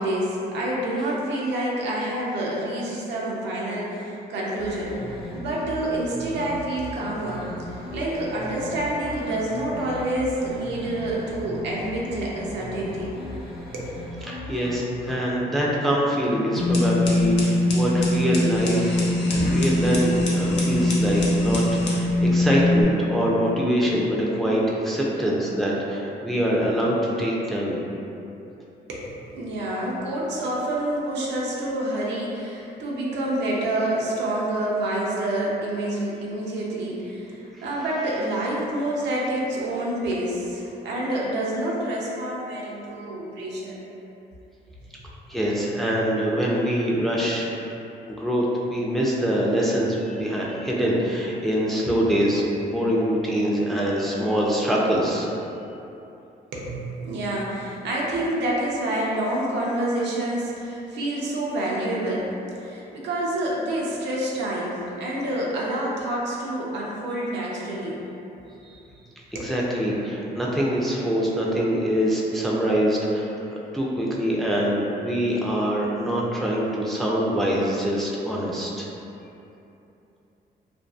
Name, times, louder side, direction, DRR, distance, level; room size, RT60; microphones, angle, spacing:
voice 1, 0.0-5.0 5.3-7.5 7.9-13.1 13.7-13.9 28.9-43.8 44.8-44.9 56.5-62.3 62.6-68.0 69.3-69.5, right 1 dB, 85° right, -4 dB, 0.5 m, -28 dB
sound 1, 4.6-15.1, left 1 dB, 65° left, 0.9 m, -38 dB
voice 2, 14.3-27.8 37.5-37.6 45.3-47.5 48.1-55.3 68.6-68.8 69.4-73.3 73.7-78.9, equal, ahead, -5 dB, 0.3 m, -24 dB
sound 2, 16.6-22.8, left 1 dB, 90° left, 0.5 m, -22 dB
2.5 x 2.3 x 2.3 m, 2.9 s
cardioid pair, 95°, 18 cm